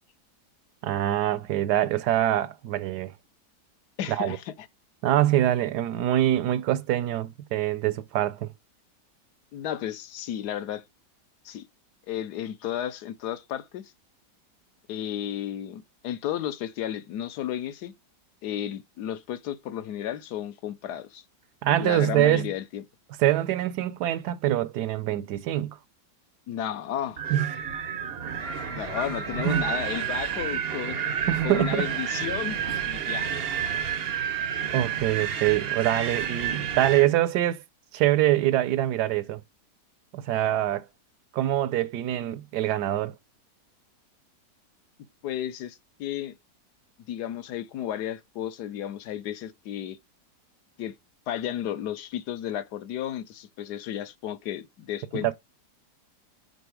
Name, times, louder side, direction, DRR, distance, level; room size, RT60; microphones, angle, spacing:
voice 1, 0.8-3.1 4.1-4.4 5.0-8.5 21.6-22.5 23.2-25.8 27.3-27.5 29.4-29.6 31.3-31.9 34.7-37.6 37.9-39.4 40.1-40.9 41.3-43.1 55.1-55.3, right 13 dB, 75° right, 1.1 m, -24 dB
voice 2, 4.0-4.5 9.5-10.8 11.4-11.7 12.1-13.9 14.9-17.9 18.4-21.2 21.8-22.8 26.5-27.2 28.7-33.3 45.2-46.4 47.1-50.0 50.8-50.9 51.3-55.3, left 11 dB, 70° left, 1.2 m, -33 dB
Wind, 27.2-37.1, right 8 dB, 55° right, 0.7 m, -30 dB
6.8 x 4.4 x 4.7 m
omnidirectional pair, 1.9 m